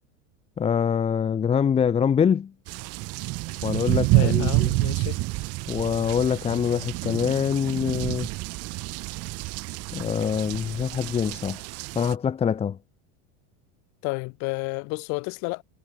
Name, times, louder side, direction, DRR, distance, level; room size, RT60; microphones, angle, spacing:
voice 1, 0.6-2.5 3.6-4.7 5.7-8.3 9.9-11.6 11.9-12.8, left 7 dB, 15° left, 1.1 m, -24 dB
sound 1, 2.7-12.1, right 23 dB, 45° right, 1.5 m, -28 dB
voice 2, 4.1-5.2 14.0-15.6, left 30 dB, 50° left, 4.0 m, -31 dB
supercardioid pair, 150°, 35 cm